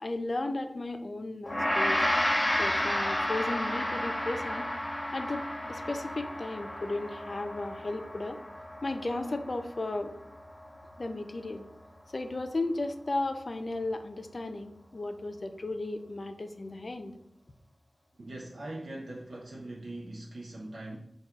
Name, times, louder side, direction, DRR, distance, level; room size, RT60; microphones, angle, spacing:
voice 1, 0.0-2.0 2.6-4.7 5.1-8.4 8.8-10.1 11.0-11.6 12.1-17.1, left 2 dB, 60° left, 7 dB, 0.4 m, -35 dB
Gong, 1.5-10.8, left 1 dB, 35° left, 0.8 m, -32 dB
voice 2, 18.2-21.0, right 1 dB, 90° right, -3 dB, 0.5 m, -41 dB
4.4 x 2.3 x 3.5 m, 0.78 s
wide cardioid pair, 50°, 0 cm